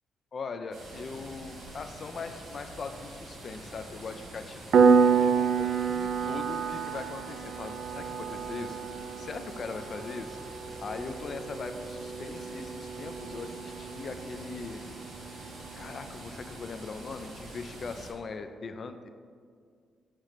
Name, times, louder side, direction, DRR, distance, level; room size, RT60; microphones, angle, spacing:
voice 1, 0.3-8.8 9.2-10.4 10.8-14.9 15.8-19.1, left 4 dB, 40° left, 8 dB, 0.4 m, -40 dB
sound 1, 0.7-18.1, right 1 dB, 80° right, 1.6 m, -46 dB
Piano, 4.7-15.1, right 6 dB, 60° right, 0.3 m, -28 dB
7.4 x 3.1 x 4.9 m, 2.1 s
cardioid pair, 150°, 0 cm